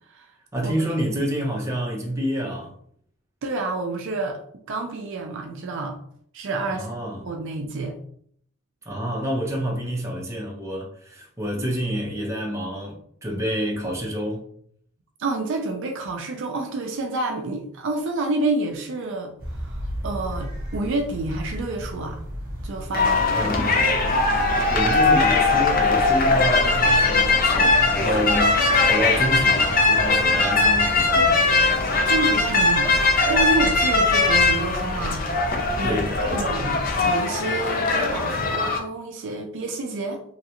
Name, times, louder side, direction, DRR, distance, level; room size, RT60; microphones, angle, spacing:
voice 1, 0.5-2.7 6.7-7.3 8.9-14.4 23.3-23.8 24.7-31.4 35.8-36.4, equal, 15° right, 0.6 m, -28 dB
voice 2, 3.4-4.4 4.7-6.0 6.3-6.9 7.2-8.0 15.2-22.2 22.6-23.9 32.1-32.9 33.3-35.3 35.8-40.2, right 2 dB, 55° right, 0.4 m, -29 dB
sound 1, 19.4-37.0, equal, 40° right, 1.1 m, -33 dB
sound 2, 22.9-38.8, left 3 dB, 40° left, 0.5 m, -20 dB
3.1 x 2.4 x 2.8 m
head